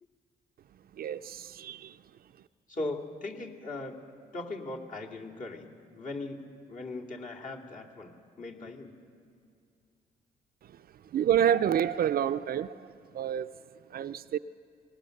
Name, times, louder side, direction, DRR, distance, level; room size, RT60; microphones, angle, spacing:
voice 1, 0.9-2.0 10.6-13.5 13.9-14.4, right 9 dB, 60° right, 0.5 m, -29 dB
voice 2, 2.7-3.9 4.3-5.7 5.9-6.4 6.7-8.9, left 2 dB, 50° left, 2.6 m, -39 dB
23.0 x 20.5 x 6.5 m
cardioid pair, 95°, 17 cm